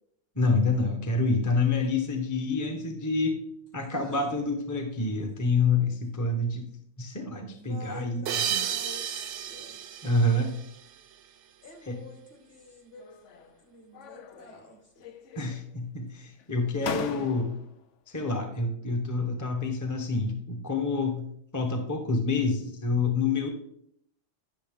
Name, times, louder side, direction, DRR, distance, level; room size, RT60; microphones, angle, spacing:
voice 1, 0.4-3.4 3.7-6.7 7.0-8.6 10.0-10.6 11.9-12.0 15.4-17.5 18.1-21.3 21.5-23.5, left 3 dB, 15° left, 3 dB, 0.8 m, -27 dB
voice 2, 3.8-4.2 7.3-9.2 9.5-9.8 11.6-13.0 13.4-15.2, left 2 dB, 50° left, 3 dB, 1.8 m, -48 dB
sound 1, 8.3-11.3, right 9 dB, 70° right, 0.9 m, -33 dB
sound 2, 13.0-13.6 13.9-14.7 15.0-15.8 16.4-16.5 16.8-17.8, left 7 dB, 75° left, 1.0 m, -39 dB
9.9 x 6.3 x 3.5 m, 0.69 s
omnidirectional pair, 1.3 m